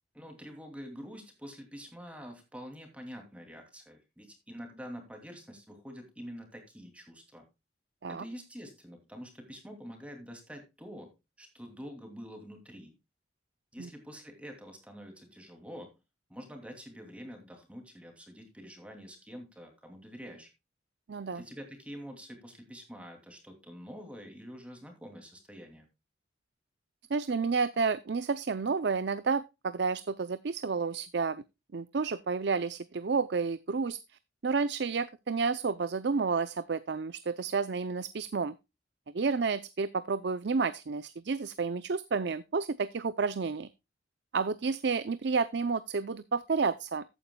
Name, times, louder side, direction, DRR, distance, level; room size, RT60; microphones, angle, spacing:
voice 1, 0.1-7.4 8.1-11.1 11.4-12.9 13.7-16.0 16.3-20.5 21.3-25.9, equal, 5° right, 4 dB, 2.6 m, -46 dB
voice 2, 21.1-21.4 27.1-31.4 31.7-34.0 34.4-38.5 39.1-43.7 44.3-47.0, right 4 dB, 60° right, 15 dB, 0.5 m, -30 dB
14.0 x 9.2 x 2.2 m, 0.24 s
head